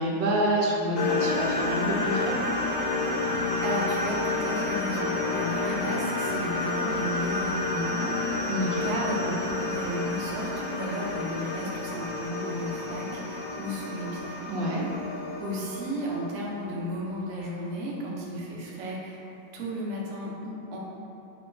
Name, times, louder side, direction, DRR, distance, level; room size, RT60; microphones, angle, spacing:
voice 1, 0.0-2.3 8.5-8.9 14.5-14.8, right 1 dB, 85° right, -3 dB, 1.3 m, -27 dB
sound 1, 1.0-16.9, left 3 dB, 80° left, 1.2 m, -30 dB
voice 2, 3.3-8.1 8.8-14.4 15.4-19.2 19.5-20.8, equal, 60° right, -4 dB, 0.8 m, -34 dB
3.4 x 3.0 x 3.7 m, 3.0 s
omnidirectional pair, 1.9 m